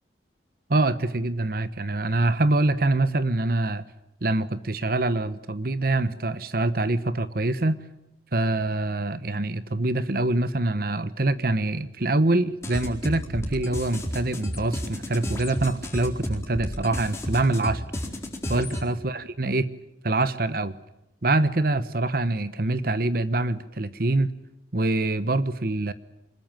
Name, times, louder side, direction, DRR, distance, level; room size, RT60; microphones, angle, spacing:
voice 1, 0.7-3.8 4.2-7.8 8.3-17.8 18.5-19.7 20.0-20.7 21.2-24.3 24.7-25.9, right 2 dB, 55° right, 14 dB, 1.1 m, -25 dB
sound 1, 12.6-18.8, equal, 15° left, 4.3 m, -32 dB
25.0 x 21.0 x 9.0 m, 0.89 s
head